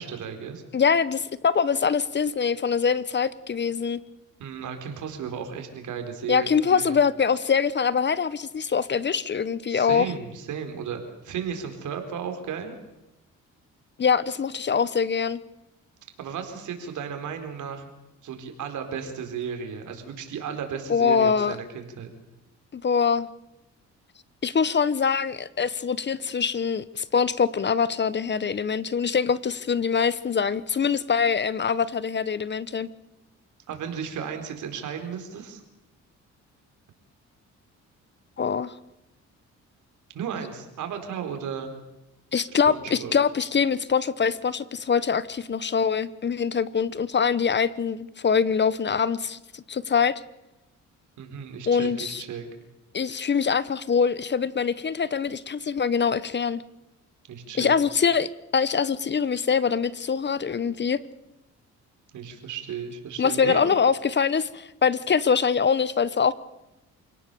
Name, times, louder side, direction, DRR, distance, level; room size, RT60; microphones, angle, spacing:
voice 1, 0.0-0.6 4.4-6.9 9.7-12.7 16.2-17.8 18.2-22.1 33.7-35.6 40.1-41.7 42.7-43.1 51.2-52.5 57.3-57.7 62.1-63.6, right 7 dB, 75° right, 5 dB, 4.4 m, -34 dB
voice 2, 0.7-4.0 6.3-10.1 14.0-15.4 20.9-21.6 22.7-23.3 24.4-32.9 38.4-38.7 42.3-50.1 51.7-52.2 52.9-56.6 57.6-61.0 63.2-66.3, left 6 dB, 35° left, 18 dB, 1.0 m, -24 dB
28.0 x 17.5 x 7.0 m, 0.96 s
cardioid pair, 90°, 30 cm